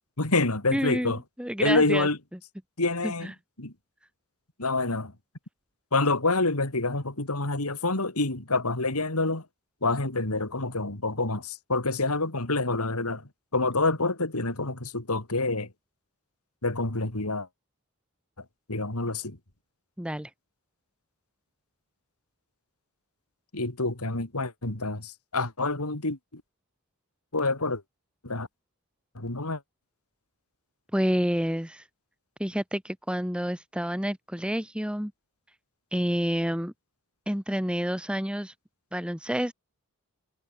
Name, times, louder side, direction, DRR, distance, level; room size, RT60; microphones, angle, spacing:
voice 1, 0.2-1.2 1.6-2.2 2.8-3.3 3.6-3.7 4.6-5.1 5.9-9.4 9.8-13.2 13.5-15.7 16.6-17.5 18.7-19.4 23.5-26.4 27.3-27.8 28.2-28.5 29.2-29.6, left 2 dB, 85° left, 3.5 m, -27 dB
voice 2, 0.7-2.1 3.0-3.3 20.0-20.3 30.9-31.8 32.4-35.1 35.9-36.7 37.3-38.5 38.9-39.5, equal, 5° right, 1.5 m, -29 dB
head